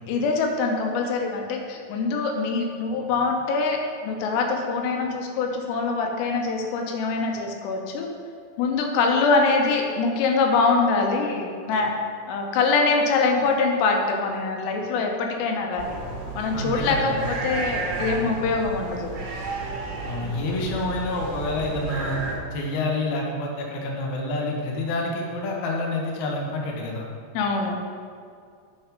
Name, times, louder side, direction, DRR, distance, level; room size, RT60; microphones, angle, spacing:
voice 1, 0.1-8.1 8.6-11.9 12.3-16.0 16.3-17.1 17.4-19.1 27.3-27.8, left 4 dB, 90° left, 2 dB, 3.1 m, -24 dB
sound 1, 15.8-22.4, right 3 dB, 55° right, 2.7 m, -32 dB
voice 2, 16.5-17.3 18.0-18.3 20.1-22.2 22.5-27.1, left 2 dB, 65° left, -1 dB, 2.1 m, -28 dB
9.2 x 5.2 x 5.2 m, 2.2 s
omnidirectional pair, 4.8 m